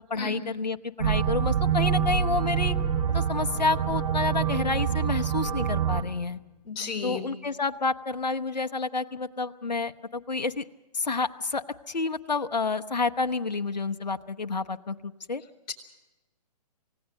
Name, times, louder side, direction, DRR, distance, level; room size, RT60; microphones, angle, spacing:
voice 1, 0.1-2.8 3.1-6.4 7.0-10.6 10.9-15.4, left 4 dB, 85° left, 9 dB, 1.0 m, -29 dB
sound 1, 1.0-6.0, right 8 dB, 60° right, 2.7 m, -26 dB
voice 2, 6.6-7.2 15.7-15.8, left 5 dB, 25° left, 1 dB, 4.1 m, -33 dB
28.0 x 17.0 x 6.5 m, 1.1 s
figure-of-eight pair, 135°, 21 cm